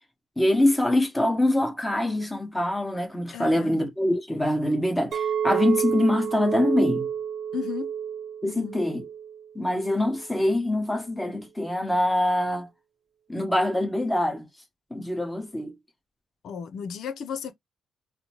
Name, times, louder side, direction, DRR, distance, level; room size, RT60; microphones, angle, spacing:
voice 1, 0.4-7.1 8.4-9.0 9.5-12.7 13.3-14.5 14.9-15.7, left 1 dB, 10° left, 1.3 m, -24 dB
voice 2, 3.3-3.8 7.5-7.9 8.4-8.8 16.4-17.5, left 7 dB, 70° left, 0.7 m, -34 dB
Chink clink, 5.1-9.5 9.8-10.2, right 8 dB, 55° right, 0.4 m, -30 dB
4.0 x 2.1 x 3.0 m
cardioid pair, 90°, 0 cm